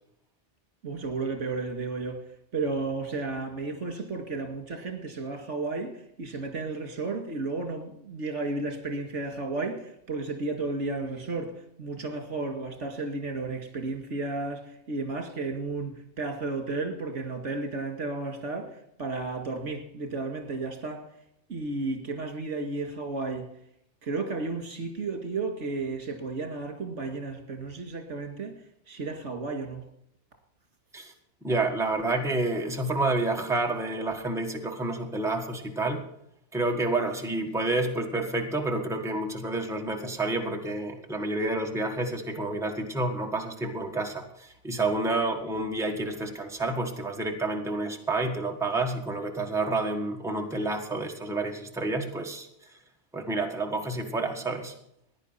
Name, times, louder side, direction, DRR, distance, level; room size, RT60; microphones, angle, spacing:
voice 1, 0.8-2.2 2.5-21.1 21.5-23.5 24.0-29.8, right 3 dB, 75° right, 2.3 m, -33 dB
voice 2, 31.4-36.0 36.5-52.5 53.1-54.7, right 2 dB, ahead, 1.5 m, -29 dB
15.5 x 10.5 x 5.7 m
omnidirectional pair, 1.2 m